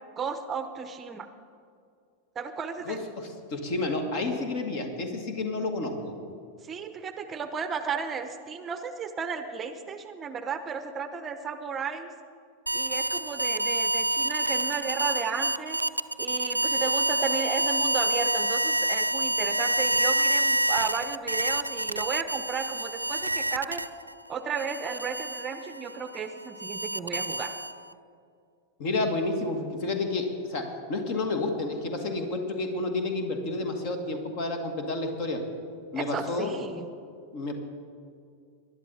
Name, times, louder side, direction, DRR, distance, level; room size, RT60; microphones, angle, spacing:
voice 1, 0.2-1.3 2.3-3.0 6.6-12.1 12.7-15.8 16.2-23.8 24.3-27.5 35.9-36.9, right 6 dB, 20° right, 10 dB, 0.7 m, -34 dB
voice 2, 2.8-6.1 28.8-35.4 35.9-36.5 37.3-37.5, left 2 dB, 45° left, 5 dB, 1.9 m, -30 dB
sound 1, 12.7-24.1 24.6-27.9, right 1 dB, 85° right, 0.3 m, -28 dB
20.5 x 11.0 x 4.2 m, 2.3 s
figure-of-eight pair, 90°, 0 cm